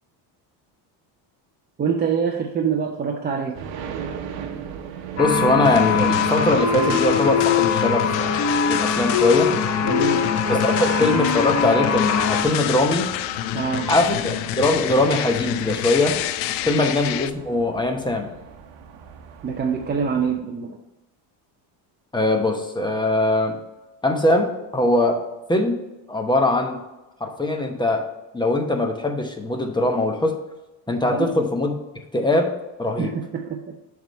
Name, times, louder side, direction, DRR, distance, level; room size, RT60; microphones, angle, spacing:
voice 1, 1.8-3.6 9.8-10.4 13.5-13.9 16.7-16.8 19.4-20.8 31.1-31.4 33.0-33.8, right 6 dB, 20° right, 1 dB, 0.5 m, -25 dB
sound 1, 3.5-20.4, right 7 dB, 75° right, 0.9 m, -37 dB
sound 2, 5.2-12.4, left 6 dB, 40° left, 0.8 m, -22 dB
voice 2, 5.2-9.5 10.5-13.1 13.9-16.2 16.6-18.3 22.1-23.6 24.0-25.2 25.5-25.8 26.1-26.8 27.2-28.0 28.3-30.4 30.9-31.7 32.1-32.5 32.8-33.1, left 2 dB, 10° left, 4 dB, 0.9 m, -21 dB
sound 3, 5.6-17.3, left 13 dB, 80° left, 0.5 m, -28 dB
7.2 x 3.6 x 5.2 m, 1.0 s
supercardioid pair, 110°, 45 cm